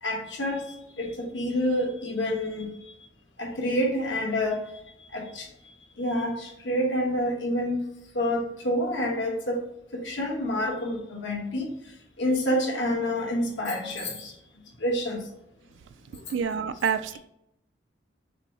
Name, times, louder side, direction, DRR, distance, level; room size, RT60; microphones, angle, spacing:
voice 1, 0.0-2.7 3.4-4.6 5.1-5.5 6.0-7.8 8.1-9.6 9.9-11.7 12.2-14.3 14.8-15.2, left 1 dB, 90° left, 1.1 m, -28 dB
voice 2, 16.3-17.2, right 7 dB, 80° right, 0.3 m, -27 dB
5.6 x 2.0 x 3.6 m
head